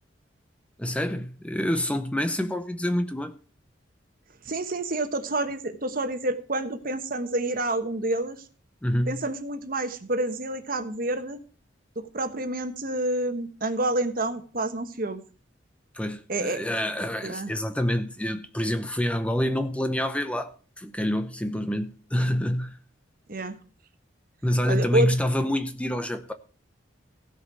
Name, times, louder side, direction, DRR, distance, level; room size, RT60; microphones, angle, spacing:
voice 1, 0.8-3.3 8.8-9.3 15.9-22.8 24.4-26.3, equal, 5° left, 0.7 m, -27 dB
voice 2, 4.4-8.4 9.1-11.4 12.0-15.2 16.3-16.6 17.2-17.5 23.3-23.6 24.7-25.1, right 2 dB, 50° right, 1.2 m, -28 dB
16.0 x 5.4 x 6.2 m
head